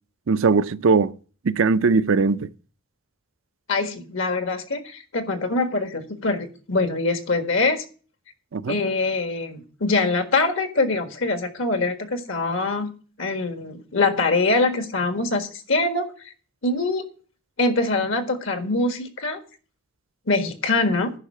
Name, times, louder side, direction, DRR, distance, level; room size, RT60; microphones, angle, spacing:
voice 1, 0.3-1.1 1.4-2.5 8.5-8.8, right 4 dB, 70° right, 0.5 m, -20 dB
voice 2, 3.7-7.8 8.7-12.9 13.2-16.3 16.6-17.0 17.6-19.4 20.3-21.1, left 3 dB, 65° left, 1.6 m, -24 dB
9.9 x 5.7 x 7.5 m
head